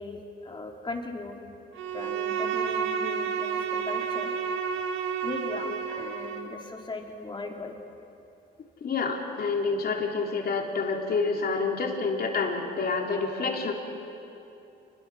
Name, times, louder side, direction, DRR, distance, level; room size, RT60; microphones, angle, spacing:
voice 1, 0.0-1.4 1.9-4.3 5.2-7.7, left 3 dB, 25° left, 2 dB, 3.1 m, -38 dB
Bowed string instrument, 1.7-6.6, right 7 dB, 90° right, 1.7 m, -30 dB
voice 2, 8.8-13.7, left 4 dB, 50° left, 1 dB, 3.4 m, -28 dB
27.5 x 21.0 x 6.3 m, 2.8 s
cardioid pair, 90°, 20 cm